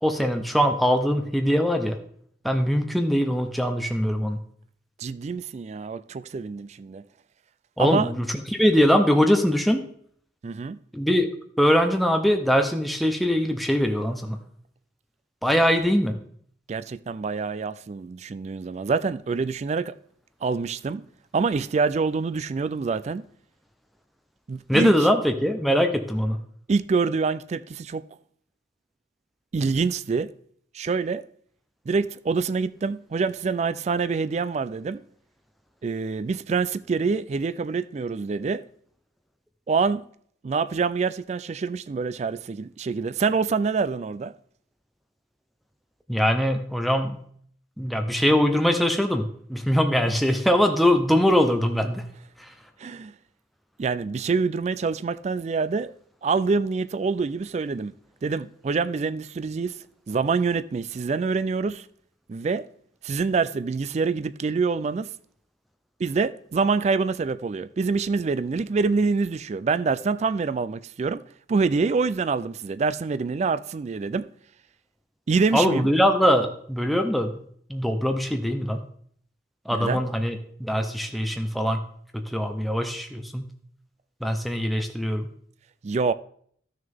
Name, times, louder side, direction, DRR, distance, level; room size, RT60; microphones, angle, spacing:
voice 1, 0.0-2.0 2.4-4.4 7.8-9.9 10.9-11.3 11.6-14.4 15.4-16.2 24.7-26.4 46.1-47.2 47.8-52.1 52.4-52.5 75.5-77.4 77.7-78.8 79.7-81.8 82.1-83.5 84.2-85.3, equal, ahead, 0.6 m, -22 dB
voice 2, 5.0-7.0 7.8-8.1 10.4-10.8 16.7-19.9 20.4-21.0 21.3-23.3 24.5-24.9 26.7-28.0 29.5-30.3 30.7-31.2 31.9-35.0 35.8-38.6 39.7-40.1 40.4-44.3 52.8-53.1 53.8-55.9 56.2-57.9 58.2-59.8 60.1-61.9 62.3-62.7 63.0-65.1 66.0-71.2 71.5-74.3 75.3-75.9 79.7-80.0 85.8-86.1, right 4 dB, 35° right, 0.3 m, -26 dB
13.0 x 6.5 x 3.5 m
head